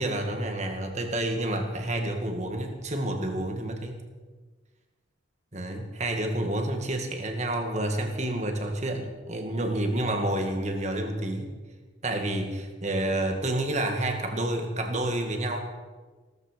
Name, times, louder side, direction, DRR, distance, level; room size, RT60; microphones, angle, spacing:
voice 1, 0.0-4.0 5.5-11.5 12.0-15.6, right 1 dB, 35° right, 4 dB, 1.9 m, -29 dB
16.5 x 14.0 x 5.2 m, 1.4 s
head